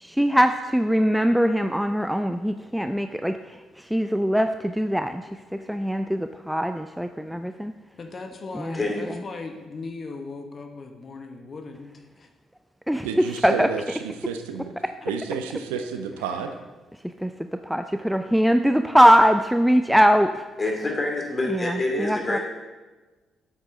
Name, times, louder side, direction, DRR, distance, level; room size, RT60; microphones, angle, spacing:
voice 1, 0.0-5.3 5.7-7.7 8.5-8.8 12.9-13.7 17.2-17.3 17.6-20.4 21.5-22.4, equal, ahead, 8 dB, 0.4 m, -21 dB
voice 2, 5.6-7.4 8.0-12.3 14.5-14.6, left 3 dB, 45° left, 5 dB, 1.2 m, -40 dB
voice 3, 13.0-13.8 14.3-14.7 15.1-16.5, right 6 dB, 85° right, 7 dB, 0.6 m, -30 dB
voice 4, 20.6-22.4, left 2 dB, 30° left, 0 dB, 2.5 m, -26 dB
8.2 x 8.2 x 3.8 m, 1.3 s
hypercardioid pair, 45°, 0 cm